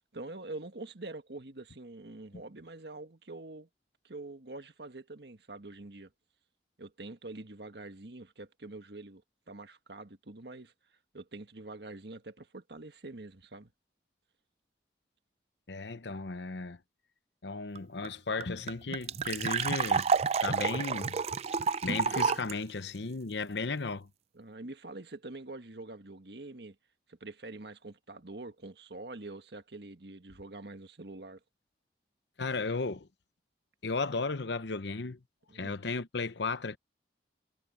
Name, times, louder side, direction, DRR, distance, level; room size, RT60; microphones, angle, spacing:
voice 1, 0.0-3.7 4.0-6.1 6.8-9.2 9.5-10.7 11.1-13.7 24.3-26.8 27.1-31.4 35.5-35.7, right 2 dB, 70° right, 1.7 m, -45 dB
voice 2, 15.7-16.8 17.4-20.1 20.4-21.2 21.8-24.1 32.4-33.1 33.8-35.2 35.5-36.8, left 4 dB, 85° left, 0.9 m, -35 dB
sound 1, 17.8-17.9 18.0-18.1 18.4-22.5, right 5 dB, 35° right, 0.4 m, -29 dB
head